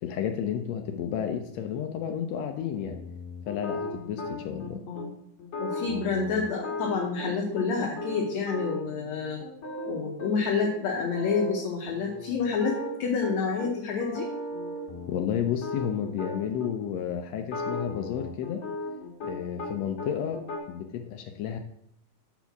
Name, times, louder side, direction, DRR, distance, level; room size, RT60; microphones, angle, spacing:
voice 1, 0.0-3.0 3.5-4.8 15.1-18.6 19.2-21.6, left 8 dB, 85° left, 6 dB, 1.5 m, -32 dB
sound 1, 2.5-4.7 5.0-5.1 5.4-7.7 8.0-10.3 10.6-10.7 11.0-11.6 11.9-13.7 14.0-16.7 17.4-19.7 20.0-20.6, left 2 dB, 40° left, 2.2 m, -36 dB
voice 2, 4.5-5.1 5.6-9.4 9.9-14.3, left 5 dB, 70° left, -1 dB, 2.1 m, -29 dB
8.1 x 4.4 x 5.8 m, 0.74 s
omnidirectional pair, 3.7 m